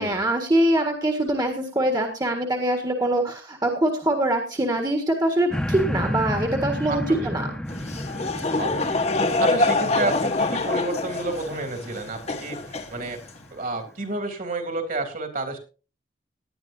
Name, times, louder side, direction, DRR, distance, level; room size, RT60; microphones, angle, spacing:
voice 1, 0.0-7.5, right 1 dB, 25° right, 3 dB, 1.7 m, -23 dB
sound 1, 5.5-12.9 13.4-13.5, equal, 5° left, 1.2 m, -32 dB
voice 2, 6.9-7.3 8.5-9.0 9.4-13.2 13.5-15.6, right 2 dB, 50° right, 5 dB, 3.2 m, -30 dB
Laughter / Crowd, 7.7-13.4, left 2 dB, 40° left, 1.3 m, -25 dB
18.5 x 11.0 x 2.7 m, 0.34 s
head